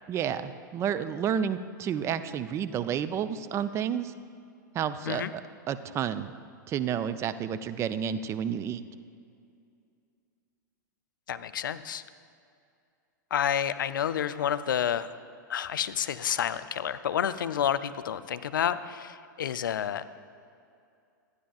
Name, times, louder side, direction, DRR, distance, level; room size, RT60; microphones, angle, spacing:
voice 1, 0.1-4.1 4.7-5.4 5.7-6.3 6.7-8.8, right 8 dB, 25° right, 12 dB, 0.3 m, -30 dB
voice 2, 11.3-12.0 13.3-15.1 15.5-20.0, left 9 dB, 75° left, 13 dB, 0.4 m, -29 dB
12.5 x 9.6 x 2.4 m, 2.4 s
hypercardioid pair, 105°, 11 cm